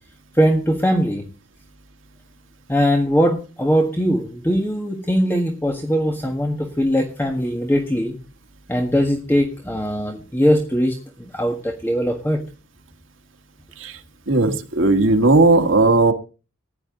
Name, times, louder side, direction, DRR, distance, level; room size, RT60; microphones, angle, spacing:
voice 1, 0.3-1.2 2.7-8.1 8.7-12.4, equal, 10° left, 2 dB, 1.6 m, -20 dB
voice 2, 14.3-16.1, right 2 dB, 75° right, 5 dB, 1.7 m, -16 dB
15.0 x 10.5 x 3.8 m, 0.33 s
head